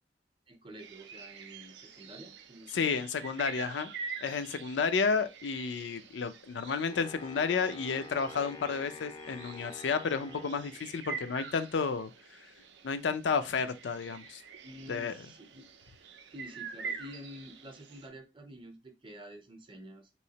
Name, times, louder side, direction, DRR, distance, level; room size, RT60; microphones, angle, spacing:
voice 1, 0.5-3.1 14.6-15.7 16.3-20.2, equal, 30° right, 0.6 m, -49 dB
sound 1, 0.8-18.1, right 6 dB, 75° right, 0.4 m, -46 dB
voice 2, 2.7-3.9 4.2-12.1 12.8-14.4 14.9-15.1, left 5 dB, 85° left, 0.4 m, -31 dB
Wind instrument woodwind instrument, 6.9-11.1, left 3 dB, 25° left, 0.4 m, -48 dB
3.5 x 3.0 x 2.8 m
head